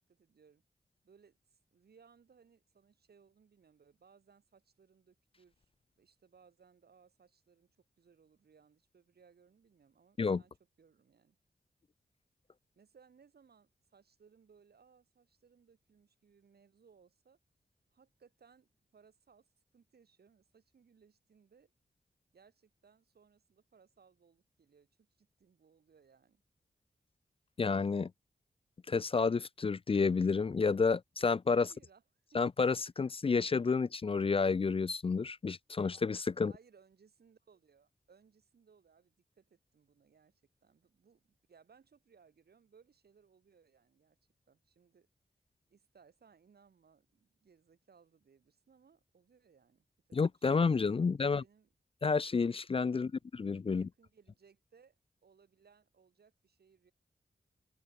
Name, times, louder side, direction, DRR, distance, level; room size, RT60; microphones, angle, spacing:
voice 1, 0.1-0.6 1.0-5.7 6.0-11.4 12.8-17.4 17.9-21.7 22.3-26.4 31.6-32.0 32.3-32.4 36.4-44.2 44.5-45.1 45.7-50.2 50.5-51.7 52.9-53.2 53.7-55.0 55.2-56.9, right 6 dB, 85° right, 6.1 m, -65 dB
voice 2, 27.6-28.1 28.9-31.7 32.3-36.5 50.1-51.4 52.0-53.1 53.4-53.9, left 4 dB, 35° left, 0.4 m, -30 dB
open air
cardioid pair, 65°, 16 cm